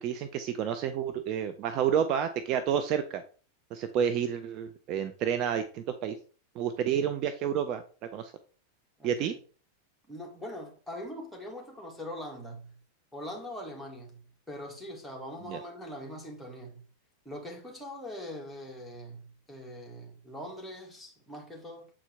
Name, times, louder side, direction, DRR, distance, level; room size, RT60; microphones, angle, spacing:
voice 1, 0.0-3.2 3.7-6.1 6.5-7.8 8.1-8.3 9.0-9.3 15.5-15.6, right 8 dB, 40° right, 0.6 m, -29 dB
voice 2, 10.1-12.8 13.1-14.2 14.5-16.8 17.3-21.9, equal, ahead, 2.0 m, -42 dB
7.3 x 4.6 x 3.4 m
figure-of-eight pair, 90°, 0 cm